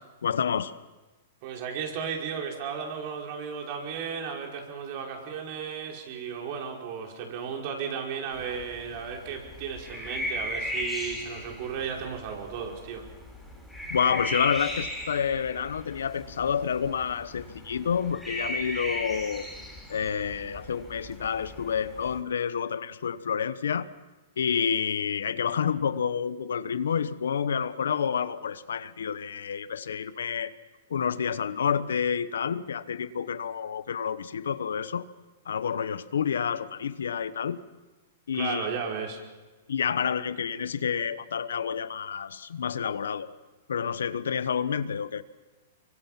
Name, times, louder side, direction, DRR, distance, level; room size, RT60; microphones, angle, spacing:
voice 1, 0.2-0.7 13.9-19.5 19.9-23.9 24.4-30.5 30.9-35.1 35.5-37.6 38.3-38.7 39.7-43.3 43.7-45.2, left 7 dB, 90° left, 15 dB, 1.0 m, -29 dB
voice 2, 1.4-13.1 38.3-39.2, right 6 dB, 50° right, 1 dB, 5.3 m, -34 dB
sound 1, 8.3-22.2, left 1 dB, ahead, 6.1 m, -37 dB
25.0 x 23.5 x 5.8 m, 1.2 s
hypercardioid pair, 135°, 0 cm